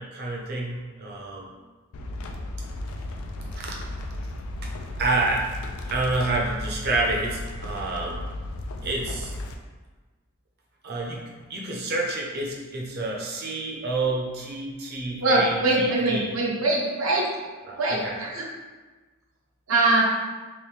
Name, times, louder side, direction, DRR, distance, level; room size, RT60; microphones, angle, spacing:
voice 1, 0.0-1.5 3.5-3.7 4.6-4.7 5.0-5.5 5.8-8.3 8.8-9.3 10.8-11.2 11.5-16.3 17.6-18.2, right 2 dB, 50° right, -2 dB, 0.7 m, -28 dB
sound 1, 1.9-9.5, left 1 dB, 80° left, 0.4 m, -35 dB
voice 2, 15.2-17.3 17.8-18.4 19.7-20.0, right 2 dB, 80° right, -3 dB, 0.8 m, -22 dB
3.5 x 3.1 x 3.2 m, 1.3 s
head